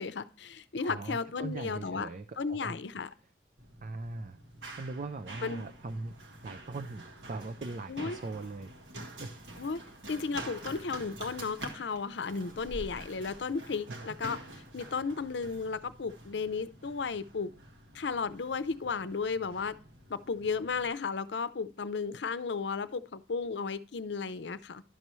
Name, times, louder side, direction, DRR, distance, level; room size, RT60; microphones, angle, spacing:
voice 1, 0.0-2.1 2.4-3.1 5.4-5.7 7.9-8.2 9.6-9.8 10.1-17.5 17.9-19.7 20.1-24.8, left 5 dB, 75° left, 14 dB, 0.6 m, -34 dB
voice 2, 0.8-2.8 3.8-4.4 4.8-6.1 6.4-8.7 9.0-9.3 13.9-14.1, right 3 dB, 45° right, 10 dB, 0.4 m, -40 dB
Run, 3.6-20.9, right 1 dB, 80° right, 1.6 m, -47 dB
11.0 x 6.7 x 3.1 m, 0.40 s
head